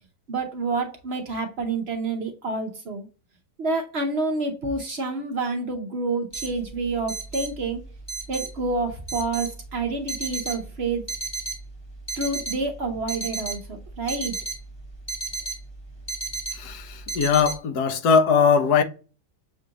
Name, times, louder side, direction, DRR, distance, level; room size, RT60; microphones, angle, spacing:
voice 1, 0.3-3.1 3.6-7.8 8.3-11.0 12.2-14.3, right 3 dB, 50° right, 0.8 m, -28 dB
sound 1, 6.3-17.5, right 3 dB, 15° left, 1.1 m, -33 dB
voice 2, 16.6-18.8, left 6 dB, 70° left, 1.2 m, -20 dB
6.6 x 2.5 x 2.8 m
omnidirectional pair, 1.8 m